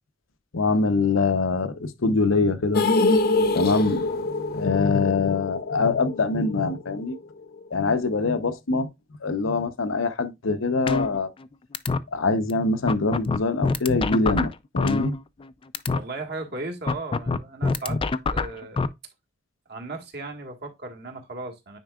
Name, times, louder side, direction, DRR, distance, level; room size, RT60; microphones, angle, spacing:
voice 1, 0.5-2.8 3.5-7.2 7.7-8.9 9.2-11.3 12.1-15.1, left 3 dB, 80° left, 0.8 m, -24 dB
sound 1, 2.7-6.9 7.1-7.2 7.6-7.7, left 2 dB, 50° left, 0.8 m, -24 dB
sound 2, 10.9-11.5 11.7-12.0 12.5-12.6 12.9-15.5 15.7-16.0 16.9-18.9, left 3 dB, 25° left, 0.4 m, -24 dB
voice 2, 15.9-18.0 18.3-18.9 19.7-21.8, right 2 dB, 55° right, 1.7 m, -36 dB
9.2 x 4.5 x 2.4 m
head